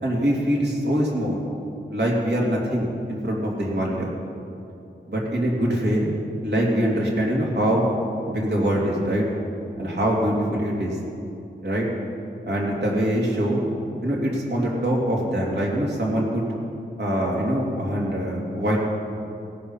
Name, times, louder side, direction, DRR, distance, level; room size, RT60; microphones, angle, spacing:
voice 1, 0.0-1.4 1.9-4.1 5.1-6.1 6.4-7.9 8.3-9.3 9.8-11.0 11.6-11.9 12.4-13.6 14.0-16.4 17.0-18.8, equal, 65° right, -3 dB, 2.7 m, -23 dB
17.0 x 7.1 x 5.7 m, 2.7 s
wide cardioid pair, 70°, 19 cm